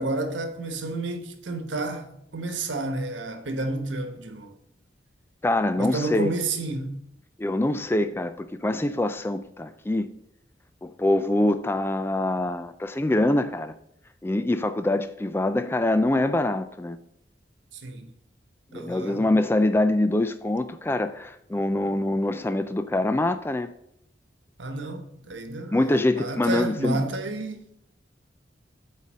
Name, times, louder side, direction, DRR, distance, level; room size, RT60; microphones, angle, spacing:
voice 1, 0.0-4.5 5.8-6.9 17.7-18.1 18.7-19.2 24.6-27.6, right 2 dB, 90° right, 1.2 m, -31 dB
voice 2, 5.4-6.3 7.4-10.1 10.8-13.7 14.2-17.0 18.7-23.7 25.7-27.0, left 1 dB, 15° left, 0.3 m, -24 dB
9.2 x 4.1 x 7.3 m
head